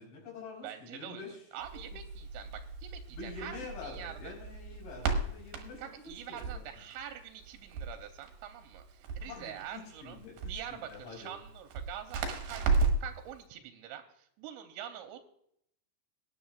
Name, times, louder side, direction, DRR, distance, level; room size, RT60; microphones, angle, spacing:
voice 1, 0.0-1.4 1.7-2.0 3.1-6.7 9.2-11.3, left 4 dB, 85° left, -3 dB, 6.7 m, -47 dB
voice 2, 0.6-4.3 5.8-10.2 10.5-15.2, right 10 dB, 90° right, 6 dB, 2.9 m, -45 dB
Crackle, 1.6-13.2, right 4 dB, 65° right, 2.4 m, -35 dB
22.5 x 9.9 x 2.4 m, 0.71 s
omnidirectional pair, 5.1 m